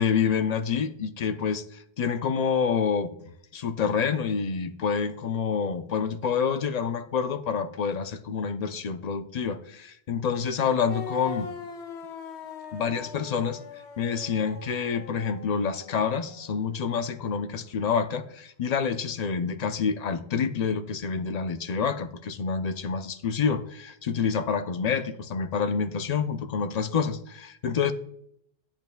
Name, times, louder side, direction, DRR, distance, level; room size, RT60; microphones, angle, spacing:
voice 1, 0.0-3.1 3.5-11.5 12.7-13.6 14.0-27.9, left 6 dB, 50° left, 9 dB, 0.5 m, -27 dB
sound 1, 10.9-16.6, left 5 dB, 70° left, 1.1 m, -41 dB
10.5 x 8.8 x 2.2 m, 0.69 s
omnidirectional pair, 1.1 m